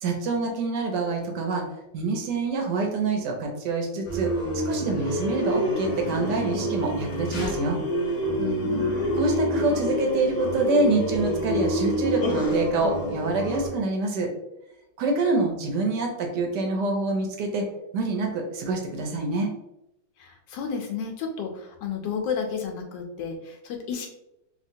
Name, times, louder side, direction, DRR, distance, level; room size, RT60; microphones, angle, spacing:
voice 1, 0.0-1.6 1.9-4.3 4.6-7.8 9.1-14.3 15.0-17.7 17.9-19.5, right 3 dB, 70° right, 2 dB, 1.1 m, -26 dB
sound 1, 4.0-13.7, equal, 40° left, 0.6 m, -27 dB
voice 2, 8.4-9.0 20.2-24.1, left 6 dB, 80° left, 3 dB, 1.3 m, -32 dB
3.0 x 2.8 x 2.6 m, 0.86 s
omnidirectional pair, 2.0 m